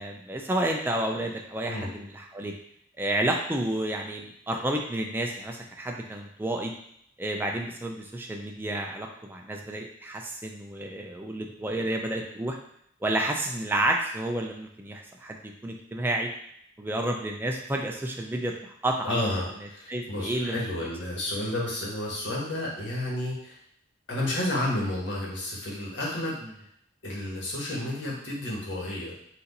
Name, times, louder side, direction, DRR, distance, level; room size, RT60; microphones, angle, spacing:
voice 1, 0.0-2.5 3.0-6.7 7.2-12.6 13.0-16.3 16.8-19.2 19.9-20.6, right 1 dB, 10° right, 1 dB, 0.4 m, -30 dB
voice 2, 19.0-23.6 24.1-26.3 27.0-29.1, left 1 dB, 75° left, -4 dB, 1.4 m, -31 dB
4.2 x 2.6 x 4.0 m, 0.71 s
head